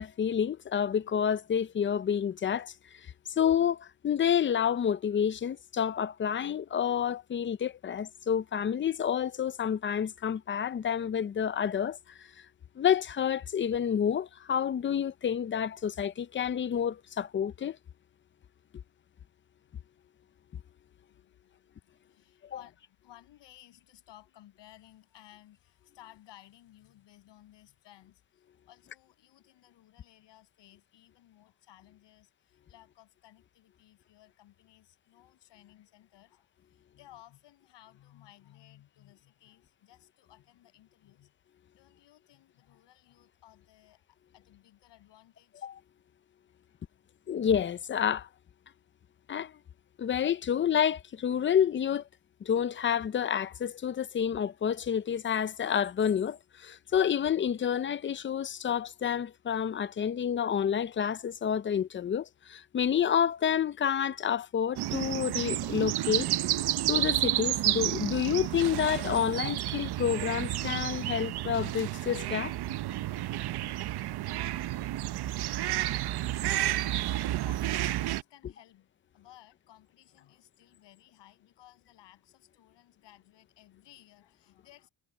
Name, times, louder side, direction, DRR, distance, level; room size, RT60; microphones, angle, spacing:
voice 1, 0.0-12.5 12.8-17.8 22.5-22.6 45.6-45.7 47.3-48.3 49.3-49.5 50.0-52.0 52.4-66.3 66.9-72.5, left 8 dB, 30° left, 0.5 m, -29 dB
voice 2, 21.0-41.3 41.7-45.7 46.5-46.8 75.9-78.9 79.1-84.9, left 13 dB, 80° left, 7.6 m, -58 dB
sound 1, 64.8-78.2, right 14 dB, 65° right, 0.8 m, -31 dB
cardioid pair, 140°, 42 cm